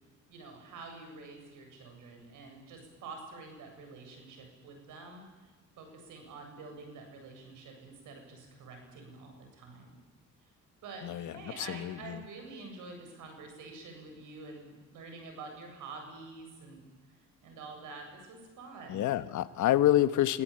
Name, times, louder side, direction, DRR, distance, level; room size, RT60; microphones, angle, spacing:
voice 1, 0.3-5.5 5.8-10.0 10.8-16.9 17.4-19.1, right 3 dB, 85° right, 4 dB, 7.8 m, -47 dB
voice 2, 11.0-12.2 18.9-20.4, left 13 dB, 75° left, 13 dB, 1.3 m, -28 dB
26.0 x 18.0 x 8.7 m, 1.2 s
cardioid pair, 90°, 30 cm